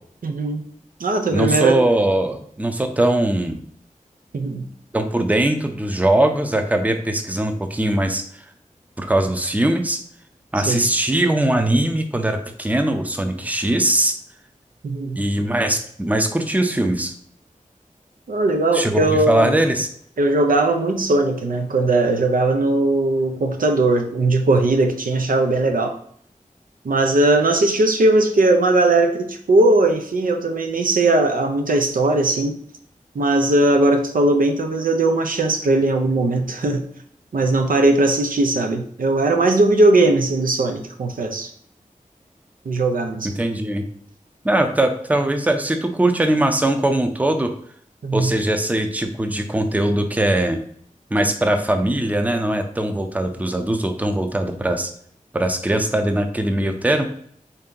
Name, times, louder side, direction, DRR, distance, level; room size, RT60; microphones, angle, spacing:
voice 1, 0.2-0.6 1.0-1.8 4.3-4.7 10.7-10.9 14.8-15.2 18.3-19.5 20.2-26.0 26.8-32.6 33.1-36.8 37.3-41.5 42.7-43.3 48.0-48.3, right 2 dB, 90° right, 5 dB, 0.5 m, -19 dB
voice 2, 1.3-3.6 4.9-8.2 9.0-10.0 10.5-14.2 15.2-17.1 18.7-19.9 43.2-43.8 44.4-47.5 48.1-50.6 51.1-54.9 55.3-57.0, right 1 dB, 10° right, 6 dB, 0.5 m, -20 dB
3.4 x 2.7 x 3.7 m, 0.63 s
wide cardioid pair, 55°, 14 cm